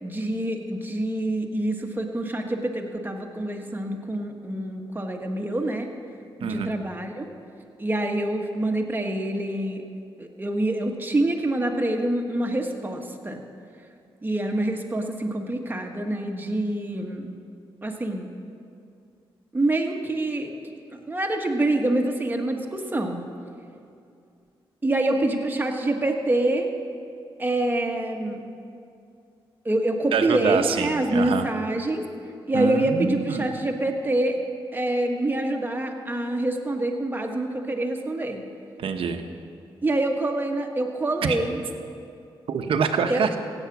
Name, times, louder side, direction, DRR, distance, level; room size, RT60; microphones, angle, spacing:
voice 1, 0.0-5.9 6.4-7.3 7.8-9.8 10.2-13.4 14.2-17.3 17.8-18.3 19.5-20.5 20.9-23.2 24.8-26.7 27.4-28.4 29.6-32.0 32.5-34.4 34.7-38.4 39.8-41.6 43.1-43.2, right 1 dB, 20° right, 3 dB, 1.5 m, -26 dB
voice 2, 6.4-6.7 30.1-31.5 32.5-33.5 38.8-39.2 41.2-41.4 42.5-43.4, right 6 dB, 75° right, 6 dB, 1.0 m, -25 dB
16.0 x 9.0 x 6.0 m, 2.5 s
cardioid pair, 80°, 9 cm